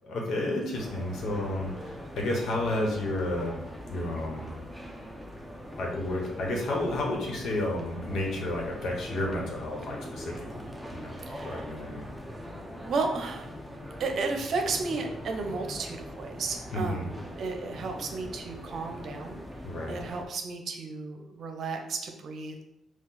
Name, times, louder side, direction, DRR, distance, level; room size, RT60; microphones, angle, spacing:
voice 1, 0.0-3.6 3.9-4.5 5.8-10.6 10.9-12.0 16.7-17.1 19.6-20.0, left 1 dB, 65° left, 0 dB, 1.2 m, -31 dB
sound 1, 0.7-20.3, equal, ahead, 0.8 m, -42 dB
voice 2, 11.3-11.7 12.9-13.5 14.0-19.4 19.9-22.6, right 4 dB, 60° right, 4 dB, 0.7 m, -33 dB
4.6 x 2.4 x 4.1 m, 0.84 s
cardioid pair, 90°, 0 cm